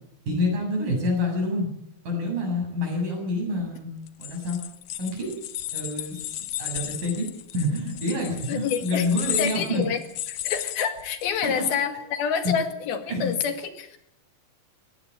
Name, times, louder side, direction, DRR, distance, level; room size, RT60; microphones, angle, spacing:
voice 1, 0.3-1.7 2.1-3.9 4.2-4.6 5.0-5.3 5.7-7.3 7.5-9.8 11.4-11.6 13.1-13.3, left 1 dB, 60° right, 1 dB, 9.1 m, -27 dB
sound 1, 4.1-11.5, left 13 dB, 70° left, 2.2 m, -34 dB
voice 2, 8.5-9.1 9.4-10.0 10.3-14.0, left 7 dB, 85° left, 8 dB, 3.9 m, -27 dB
19.5 x 16.5 x 8.7 m, 0.76 s
omnidirectional pair, 4.2 m